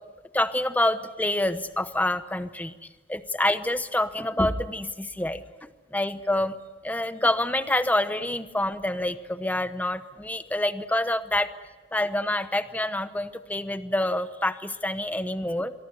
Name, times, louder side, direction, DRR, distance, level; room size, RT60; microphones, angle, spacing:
voice 1, 0.3-2.7 3.1-5.4 5.9-6.6 6.8-11.5 11.9-15.7, left 1 dB, 10° left, 12 dB, 0.8 m, -27 dB
25.0 x 24.0 x 7.9 m, 1.3 s
head